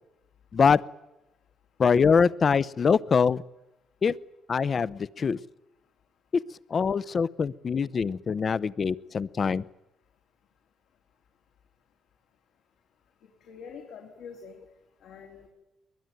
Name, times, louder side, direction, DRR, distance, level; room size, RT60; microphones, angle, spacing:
voice 1, 1.8-3.4 4.0-4.1 4.5-5.4 6.7-9.6, left 6 dB, 45° left, 18 dB, 0.8 m, -23 dB
voice 2, 13.4-14.6 15.0-15.5, left 6 dB, 85° left, 0 dB, 3.9 m, -45 dB
23.0 x 20.5 x 9.3 m, 0.99 s
cardioid pair, 90°, 0 cm